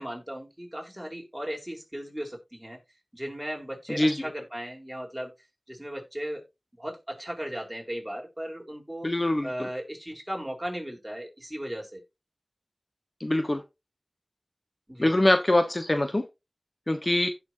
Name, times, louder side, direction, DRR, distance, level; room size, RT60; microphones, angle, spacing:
voice 1, 0.0-2.8 3.1-5.3 5.7-6.4 6.8-9.1 9.4-12.0 14.9-15.2, equal, 15° right, 4.3 m, -36 dB
voice 2, 9.0-9.5 13.2-13.6 15.0-16.3 16.9-17.3, left 1 dB, 40° left, 1.3 m, -23 dB
15.5 x 6.2 x 2.8 m
wide cardioid pair, 50°, 0 cm